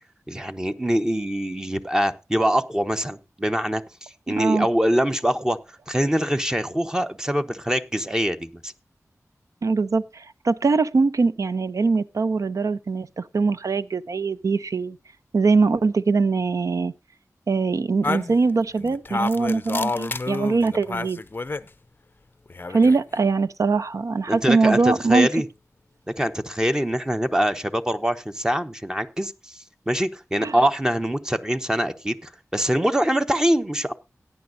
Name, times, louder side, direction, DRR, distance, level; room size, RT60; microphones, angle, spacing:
voice 1, 0.3-8.7 24.3-25.4 26.1-33.9, equal, 10° right, 0.9 m, -24 dB
voice 2, 4.4-4.7 9.6-15.0 15.3-16.9 17.5-21.2 22.7-25.3 30.4-30.6, right 4 dB, 70° right, 0.5 m, -22 dB
sound 1, 18.0-21.7 22.5-23.2, left 3 dB, 35° left, 0.5 m, -29 dB
17.0 x 9.7 x 2.6 m
wide cardioid pair, 80°, 6 cm